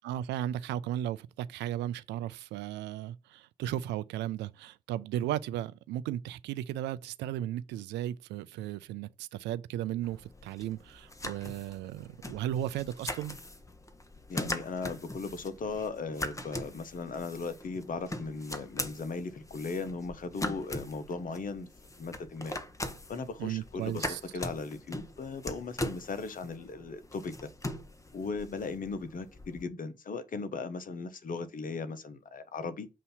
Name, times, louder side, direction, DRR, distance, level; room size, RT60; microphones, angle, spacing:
voice 1, 0.0-13.4 23.4-24.2, right 12 dB, 75° right, 0.4 m, -35 dB
sound 1, 10.0-29.6, left 1 dB, 15° left, 1.1 m, -41 dB
voice 2, 14.3-21.7 22.0-22.6 23.1-27.5 28.1-32.9, left 4 dB, 50° left, 1.0 m, -37 dB
7.3 x 2.7 x 5.6 m
hypercardioid pair, 45°, 18 cm